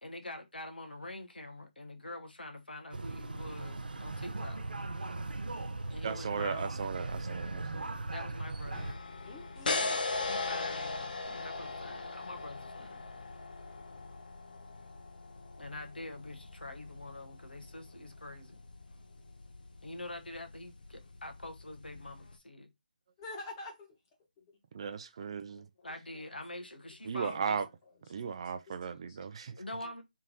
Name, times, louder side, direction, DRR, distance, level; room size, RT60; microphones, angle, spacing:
voice 1, 0.0-4.6 5.9-6.7 8.1-9.0 10.2-13.0 15.6-18.6 19.8-22.7 25.8-27.6 29.6-30.0, left 1 dB, 85° left, 1.0 m, -45 dB
sound 1, 2.9-8.9, right 2 dB, 75° right, 0.7 m, -38 dB
voice 2, 6.0-8.0 24.7-25.7 27.0-27.7 28.1-29.6, right 6 dB, 40° right, 0.3 m, -36 dB
sound 2, 8.7-22.3, left 3 dB, 70° left, 0.8 m, -40 dB
voice 3, 9.2-10.0 23.2-23.9 24.8-24.9 25.6-25.7 28.1-28.2 28.8-28.9 29.5-29.6, left 2 dB, 25° left, 1.3 m, -46 dB
3.3 x 3.1 x 3.7 m
figure-of-eight pair, 155°, 5 cm